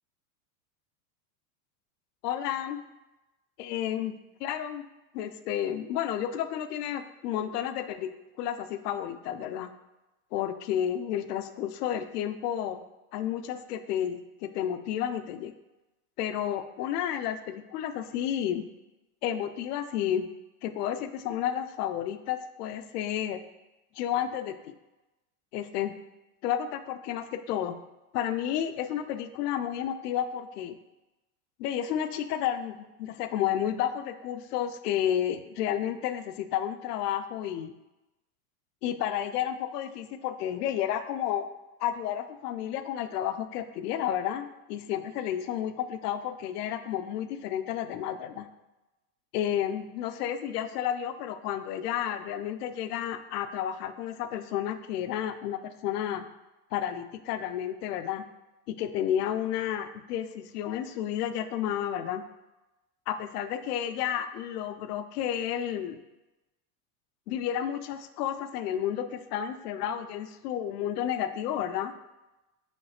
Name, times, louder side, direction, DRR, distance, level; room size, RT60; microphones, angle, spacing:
voice 1, 2.2-2.8 3.6-4.1 4.4-4.9 5.1-8.1 8.4-9.7 10.3-12.8 13.1-15.5 16.2-18.7 19.2-20.3 20.6-23.4 23.9-24.7 25.5-25.9 26.4-27.7 28.1-30.8 31.6-37.7 38.8-41.5 41.8-48.5 49.3-56.2 56.7-58.2 58.7-62.2 63.1-66.0 67.3-71.9, left 10 dB, 85° left, 9 dB, 0.5 m, -31 dB
3.3 x 3.1 x 4.2 m, 1.0 s
supercardioid pair, 175°, 46 cm